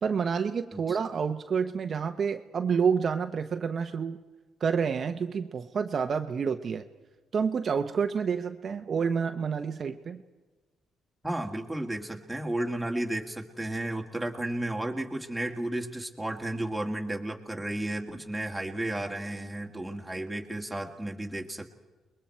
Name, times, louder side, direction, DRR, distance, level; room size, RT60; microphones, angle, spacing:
voice 1, 0.0-4.2 4.6-6.8 7.3-10.2, right 6 dB, 50° right, 6 dB, 0.9 m, -28 dB
voice 2, 11.2-21.7, right 1 dB, 5° right, 1 dB, 2.1 m, -33 dB
29.5 x 21.5 x 4.5 m, 1.3 s
cardioid pair, 90°, 0 cm